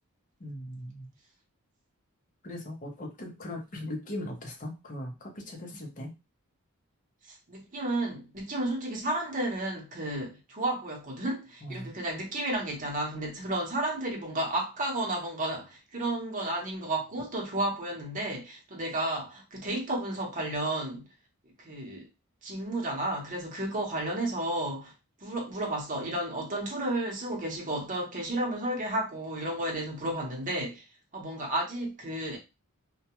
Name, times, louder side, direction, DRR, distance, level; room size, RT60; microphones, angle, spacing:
voice 1, 0.4-1.1 2.4-6.1 11.6-12.0, left 1 dB, 35° left, 0.7 m, -39 dB
voice 2, 7.3-21.1 21.6-22.1 22.4-24.9 25.2-30.8 31.1-32.4, right 1 dB, 35° right, 0.8 m, -32 dB
2.3 x 2.1 x 2.9 m
head